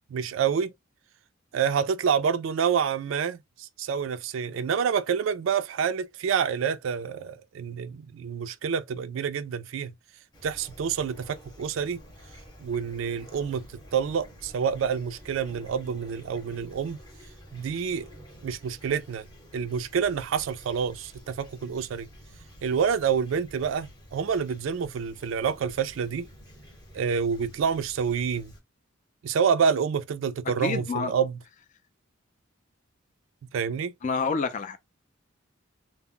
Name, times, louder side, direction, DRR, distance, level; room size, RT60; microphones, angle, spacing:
voice 1, 0.1-0.7 1.5-9.9 10.4-12.0 12.6-13.6 13.9-17.0 17.5-18.1 18.4-19.2 19.5-22.1 22.6-26.3 26.9-28.5 29.2-31.4 33.5-33.9, right 7 dB, 70° right, 0.3 m, -28 dB
Fowl / Chirp tweet, 10.3-28.6, equal, 20° left, 0.8 m, -50 dB
voice 2, 30.6-31.1 34.0-34.8, left 4 dB, 40° left, 0.4 m, -28 dB
2.1 x 2.0 x 3.6 m
head